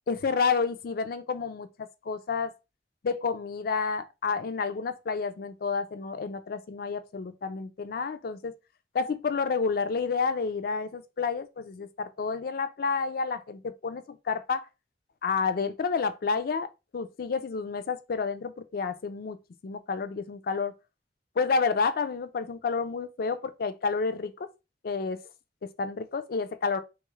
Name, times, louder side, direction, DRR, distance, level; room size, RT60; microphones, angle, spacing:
voice 1, 0.1-1.7 2.1-2.5 3.0-8.5 8.9-14.7 15.2-16.7 16.9-19.4 19.6-20.7 21.4-24.5 24.8-25.2 25.6-26.8, left 5 dB, 55° left, 0.4 m, -30 dB
3.5 x 2.4 x 3.0 m
head